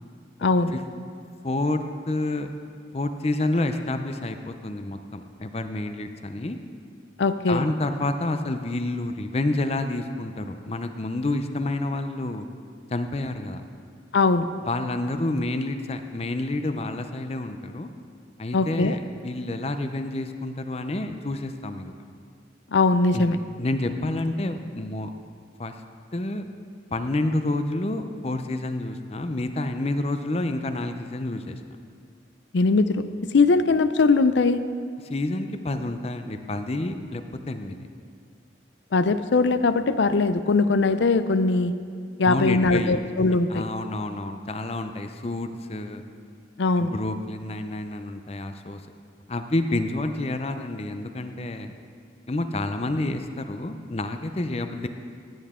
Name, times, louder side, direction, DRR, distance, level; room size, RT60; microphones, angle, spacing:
voice 1, 0.4-0.7 7.2-7.7 14.1-14.5 18.5-19.0 22.7-23.4 32.5-34.6 38.9-41.7 42.2-43.6 46.6-46.9, left 3 dB, 75° left, 12 dB, 0.5 m, -21 dB
voice 2, 1.4-2.5 2.9-6.6 7.5-12.5 12.9-13.6 14.7-17.9 18.4-21.9 23.1-25.1 25.6-25.7 26.1-26.4 26.9-31.6 35.0-37.8 42.2-43.0 43.5-46.0 46.8-48.8 49.3-51.7 52.3-54.9, left 2 dB, 35° left, 8 dB, 0.6 m, -29 dB
15.5 x 10.0 x 3.7 m, 2.2 s
head